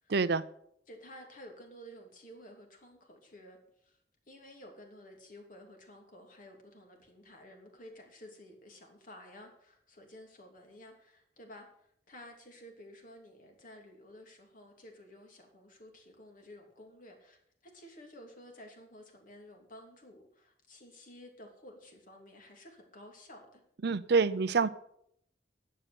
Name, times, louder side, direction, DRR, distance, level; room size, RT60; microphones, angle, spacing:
voice 1, 0.1-0.4 23.8-24.7, right 4 dB, 65° right, 16 dB, 0.6 m, -26 dB
voice 2, 0.9-4.0 4.3-23.6, left 1 dB, 50° left, 2 dB, 2.9 m, -53 dB
11.0 x 7.7 x 7.9 m, 0.71 s
head